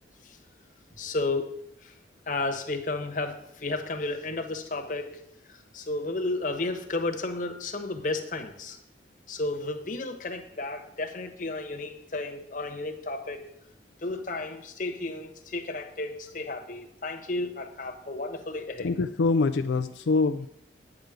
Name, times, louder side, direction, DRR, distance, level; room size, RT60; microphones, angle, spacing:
voice 1, 1.0-1.4 1.8-1.9 2.3-5.2 5.5-8.8 9.3-13.5 14.0-18.9, left 2 dB, 50° left, 4 dB, 1.2 m, -33 dB
voice 2, 18.8-20.5, left 3 dB, 90° left, 9 dB, 0.4 m, -25 dB
9.3 x 5.0 x 7.9 m, 0.78 s
head